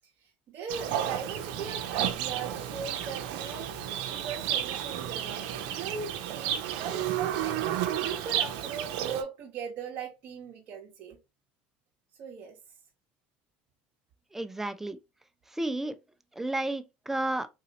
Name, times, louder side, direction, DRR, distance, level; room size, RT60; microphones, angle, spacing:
voice 1, 0.2-3.7 4.0-11.2 12.2-12.6, right 6 dB, 50° right, 0.9 m, -39 dB
Livestock farm animals working animals, 0.7-9.2, right 11 dB, 80° right, 0.6 m, -32 dB
voice 2, 14.3-15.0 15.5-16.0 16.4-17.5, right 1 dB, 5° right, 0.4 m, -32 dB
3.9 x 2.8 x 2.8 m
supercardioid pair, 105°, 4 cm